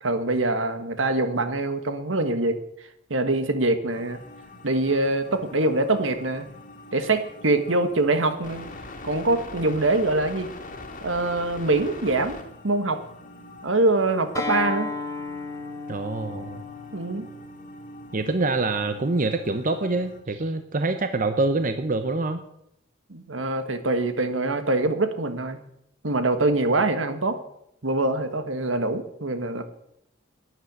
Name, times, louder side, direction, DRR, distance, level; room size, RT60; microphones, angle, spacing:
voice 1, 0.0-2.6 3.1-4.2 4.6-6.5 6.9-8.6 9.0-10.5 11.0-13.0 13.6-14.9 16.9-17.3 23.1-25.6 26.0-27.4 27.8-29.6, right 2 dB, 75° right, 9 dB, 1.5 m, -24 dB
sound 1, 3.9-20.2, left 2 dB, 45° left, 2.3 m, -44 dB
Acoustic guitar, 14.3-19.5, left 3 dB, 15° left, 2.6 m, -35 dB
voice 2, 15.9-16.6 18.1-22.4, right 3 dB, 45° right, 8 dB, 0.9 m, -25 dB
11.0 x 10.5 x 8.0 m, 0.77 s
head